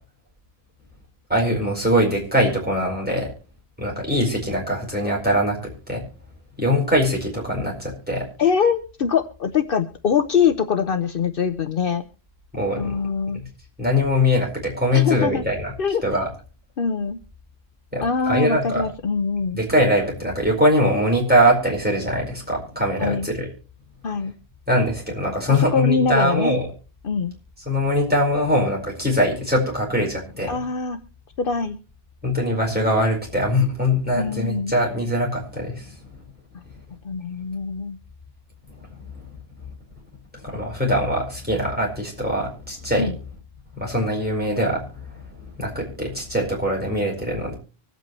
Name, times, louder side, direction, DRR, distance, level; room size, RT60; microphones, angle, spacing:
voice 1, 1.3-3.3 3.8-6.0 6.6-8.2 12.5-13.0 13.3-13.4 13.8-15.7 16.0-16.3 17.9-18.9 19.5-23.5 24.7-26.7 27.6-30.6 32.2-36.0 38.7-39.2 40.4-43.1 43.8-47.5, equal, 10° right, -3 dB, 4.7 m, -22 dB
voice 2, 8.4-12.1 12.8-13.4 14.9-15.4 15.8-16.0 16.8-17.2 18.0-19.6 23.0-23.3 24.0-24.3 25.5-26.6 27.0-27.3 30.5-31.0 31.4-31.8 34.2-34.7 37.0-38.0 43.0-43.1, left 6 dB, 65° left, 8 dB, 1.0 m, -23 dB
24.5 x 8.2 x 3.1 m, 0.35 s
omnidirectional pair, 1.0 m